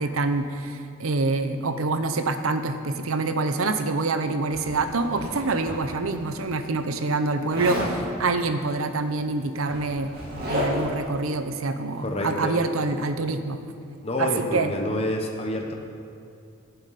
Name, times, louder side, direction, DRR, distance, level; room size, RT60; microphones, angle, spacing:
voice 1, 0.0-10.1 10.5-13.6 14.2-14.7, right 3 dB, 85° right, 9 dB, 0.7 m, -26 dB
Zipper (clothing), 4.5-6.2 7.5-8.0 9.1-9.2 9.5-11.0, left 1 dB, 45° right, 2.9 m, -31 dB
voice 2, 12.0-12.6 14.0-15.7, left 1 dB, 30° left, 1 dB, 0.9 m, -28 dB
15.0 x 7.8 x 4.2 m, 2.5 s
head